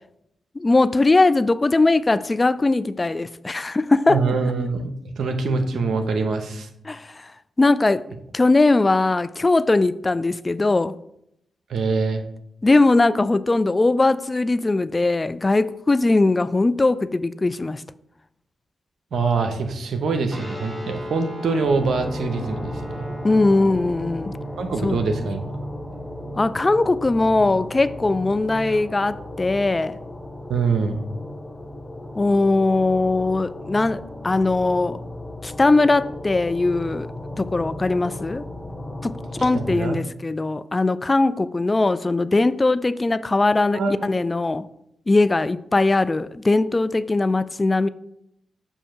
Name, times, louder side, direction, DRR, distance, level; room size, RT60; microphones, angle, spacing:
voice 1, 0.6-4.2 6.9-7.3 7.6-8.1 8.3-10.9 12.6-17.8 23.2-24.3 24.8-25.0 26.4-30.0 32.2-35.0 35.4-37.1 37.4-38.5 39.0-44.6 45.1-47.9, left 2 dB, 30° left, 0.3 m, -20 dB
voice 2, 4.1-4.9 5.2-6.7 11.7-12.2 19.1-23.1 24.6-25.6 30.5-31.0 39.5-40.0 43.7-44.1, right 4 dB, 70° right, 0.9 m, -24 dB
Guitar, 20.3-28.8, right 2 dB, 10° right, 2.0 m, -38 dB
sound 1, 21.6-39.8, left 1 dB, 15° left, 0.9 m, -35 dB
7.3 x 2.7 x 5.7 m
hypercardioid pair, 40°, 0 cm